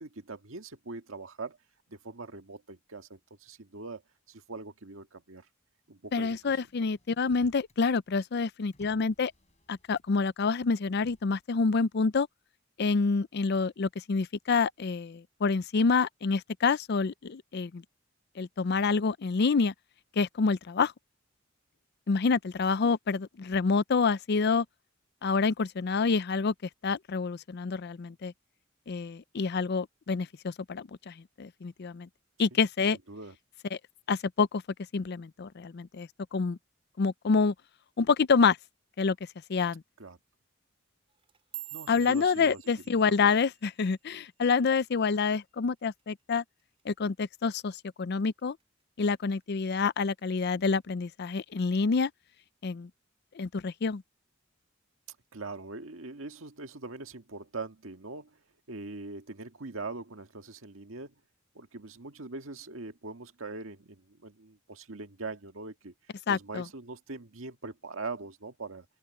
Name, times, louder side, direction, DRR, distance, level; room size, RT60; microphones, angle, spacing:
voice 1, 0.0-1.6 1.9-4.0 4.3-5.5 5.9-6.5 6.8-6.9 33.1-33.3 40.0-40.2 41.7-42.6 55.3-58.4 58.7-61.1 61.5-65.9 66.3-68.8, right 3 dB, 80° right, 1.7 m, -42 dB
voice 2, 6.1-9.3 9.7-12.3 12.8-17.8 18.4-19.7 20.2-20.9 22.1-24.7 25.2-28.3 28.9-32.1 32.4-33.0 33.7-33.8 34.1-34.6 34.9-36.6 37.0-37.5 38.0-38.6 39.0-39.2 39.5-39.8 41.9-46.4 46.9-48.6 49.0-52.1 52.6-52.9 53.3-54.0 66.3-66.7, left 4 dB, 55° left, 0.5 m, -27 dB
Motor vehicle (road), 6.2-7.8 8.2-10.3 10.9-11.4, left 1 dB, 35° left, 5.1 m, -61 dB
sound 1, 41.1-45.5 45.8-46.2 46.6-47.0 47.4-47.6 48.2-48.6 49.0-49.8 50.2-50.6 51.4-51.5, right 14 dB, 30° right, 3.9 m, -48 dB
open air
head